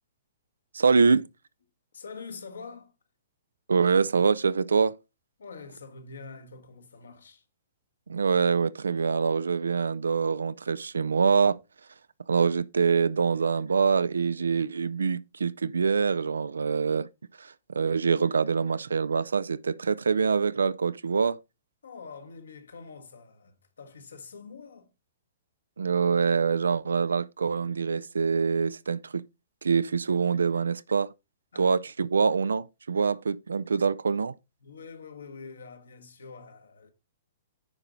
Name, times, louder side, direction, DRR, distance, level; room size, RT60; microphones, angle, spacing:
voice 1, 0.7-1.2 3.7-4.9 8.1-11.6 12.3-17.1 17.4-21.4 25.8-29.2 29.6-31.1 31.6-34.3, right 5 dB, 70° right, 0.4 m, -25 dB
voice 2, 1.9-2.9 5.4-7.4 21.8-24.9 31.5-31.7 34.6-36.9, left 4 dB, 65° left, 1.5 m, -45 dB
9.8 x 4.9 x 3.9 m
figure-of-eight pair, 110°, 0 cm